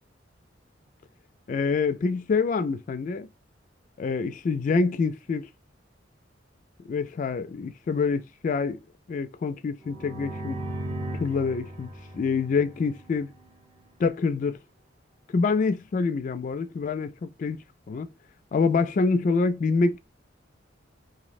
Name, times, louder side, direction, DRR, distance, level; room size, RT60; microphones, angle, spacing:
voice 1, 1.5-3.3 4.0-5.5 6.9-8.8 9.1-10.6 11.2-11.9 12.1-13.3 14.0-14.6 15.3-18.1 18.5-20.0, left 4 dB, 45° left, 0.3 m, -26 dB
sound 1, 9.8-13.5, right 1 dB, 40° right, 0.8 m, -37 dB
2.6 x 2.0 x 4.0 m
head